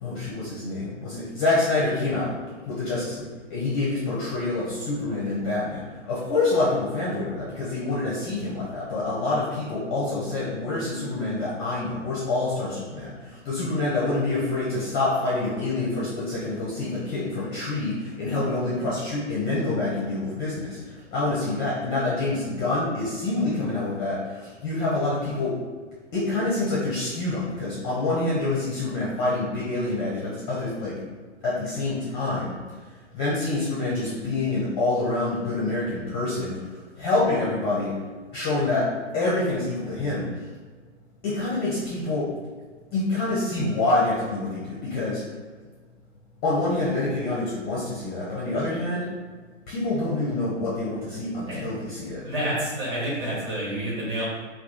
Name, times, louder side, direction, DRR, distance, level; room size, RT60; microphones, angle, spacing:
voice 1, 0.0-2.3 2.7-13.2 13.5-20.8 21.1-24.2 24.6-25.6 26.1-31.0 31.4-32.5 33.1-36.6 37.0-37.9 38.3-40.3 41.2-42.3 42.9-45.2 46.4-49.1 49.7-52.2, left 2 dB, 20° left, -7 dB, 0.5 m, -26 dB
voice 2, 52.2-54.3, right 1 dB, 25° right, -6 dB, 1.3 m, -29 dB
3.0 x 2.3 x 3.5 m, 1.5 s
hypercardioid pair, 130°, 37 cm